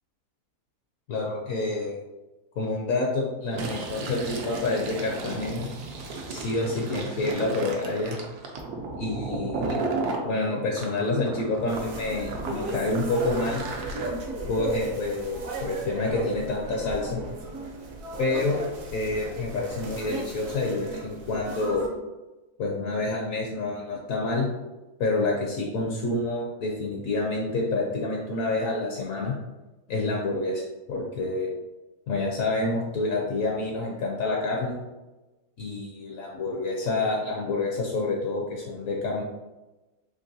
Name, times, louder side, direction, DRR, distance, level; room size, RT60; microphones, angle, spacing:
voice 1, 1.1-2.0 2.6-5.7 6.3-8.2 9.0-9.8 10.2-13.6 14.5-17.2 18.2-18.6 18.9-21.9 22.6-24.5 25.0-29.3 29.9-30.6 30.9-31.5 32.1-34.8 35.6-39.2, left 2 dB, 70° left, -1 dB, 0.9 m, -28 dB
Fill (with liquid), 3.4-10.2 10.8-14.1, right 3 dB, 85° right, 1.1 m, -34 dB
sound 1, 11.7-21.9, right 2 dB, 65° right, 1.1 m, -35 dB
3.8 x 2.9 x 2.6 m, 1.1 s
omnidirectional pair, 1.6 m